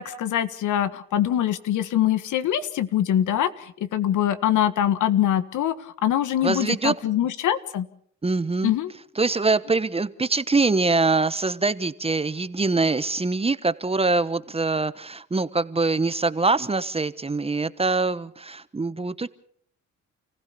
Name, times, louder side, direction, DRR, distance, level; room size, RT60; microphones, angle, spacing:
voice 1, 0.0-7.9 8.6-8.9, left 11 dB, 80° left, 12 dB, 1.7 m, -23 dB
voice 2, 6.4-6.9 8.2-8.7 9.2-19.3, right 3 dB, 20° right, 14 dB, 1.1 m, -24 dB
29.0 x 16.0 x 7.0 m, 0.62 s
cardioid pair, 90°, 30 cm